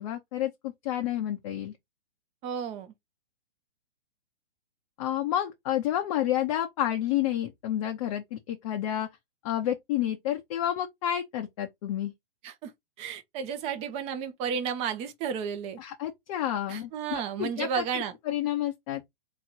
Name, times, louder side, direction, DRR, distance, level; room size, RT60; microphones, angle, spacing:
voice 1, 0.0-1.7 5.0-9.1 9.4-12.1 15.8-19.0, left 11 dB, 35° left, 0.7 m, -30 dB
voice 2, 2.4-2.9 12.4-12.7 13.0-15.8 16.7-18.1, right 7 dB, 20° right, 0.8 m, -32 dB
3.8 x 3.0 x 4.5 m
hypercardioid pair, 140°, 30 cm